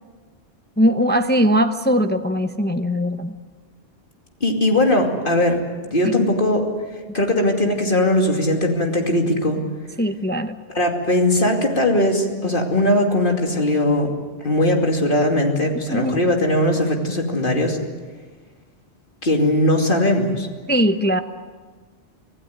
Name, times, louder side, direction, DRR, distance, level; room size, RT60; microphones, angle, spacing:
voice 1, 0.8-3.3 6.0-6.1 10.0-10.5 15.9-16.2 20.7-21.2, equal, 10° left, 7 dB, 0.8 m, -20 dB
voice 2, 4.4-5.6 5.9-6.7 7.1-9.6 10.7-14.1 14.4-17.8 19.2-20.5, left 1 dB, 50° left, 2 dB, 2.8 m, -19 dB
25.5 x 16.5 x 9.5 m, 1.4 s
omnidirectional pair, 1.2 m